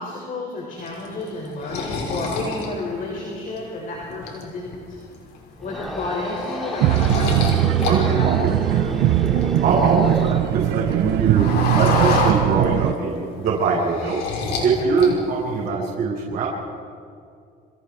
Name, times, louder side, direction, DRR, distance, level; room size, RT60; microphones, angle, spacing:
voice 1, 0.0-5.0 5.6-7.3 7.7-8.4 8.7-8.9 11.5-11.9 14.8-15.1, left 2 dB, 50° left, -2 dB, 6.6 m, -31 dB
sound 1, 0.9-3.6 4.0-4.7 5.1-5.4 5.7-7.9 8.2-10.3 10.6-13.0 13.3-14.7 15.0-15.6, left 4 dB, 75° left, 5.8 m, -28 dB
sound 2, 5.6-10.5, equal, ahead, 2.3 m, -31 dB
sound 3, 6.8-12.9, right 14 dB, 80° right, 0.6 m, -20 dB
voice 2, 7.9-8.5 9.6-11.4 11.8-14.2 14.6-16.5, right 4 dB, 55° right, -7 dB, 6.9 m, -22 dB
29.5 x 27.5 x 4.8 m, 2.3 s
cardioid pair, 110°, 17 cm